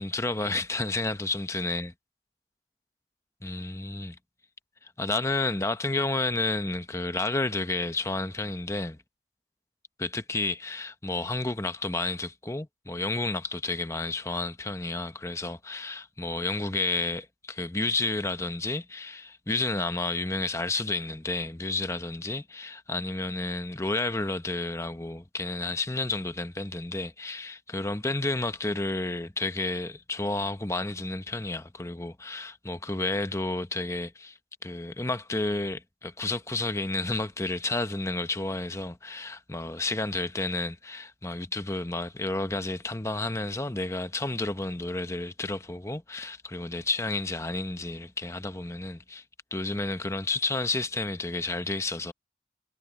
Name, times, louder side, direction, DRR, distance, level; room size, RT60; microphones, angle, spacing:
voice 1, 0.0-1.9 3.4-4.2 4.8-9.0 10.0-49.2 49.5-52.1, left 2 dB, 15° left, 0.8 m, -31 dB
head